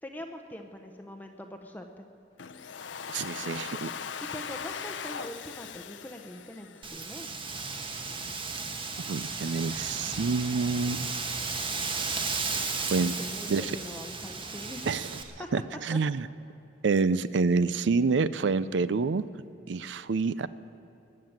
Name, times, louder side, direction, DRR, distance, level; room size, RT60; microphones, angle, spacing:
voice 1, 0.0-2.1 3.4-3.7 4.2-7.3 13.0-15.0 15.4-15.5 15.9-16.0, equal, 10° left, 4 dB, 0.8 m, -43 dB
Domestic sounds home sounds, 2.4-7.3, left 7 dB, 80° left, 0.7 m, -39 dB
voice 2, 3.1-3.9 9.1-11.1 12.8-13.2 13.5-13.8 14.9-15.1 15.5-16.3 16.8-19.2 19.7-20.5, right 4 dB, 70° right, 16 dB, 0.5 m, -27 dB
Wind, 6.8-15.2, right 4 dB, 30° right, 1.2 m, -34 dB
20.5 x 7.6 x 8.8 m, 3.0 s
head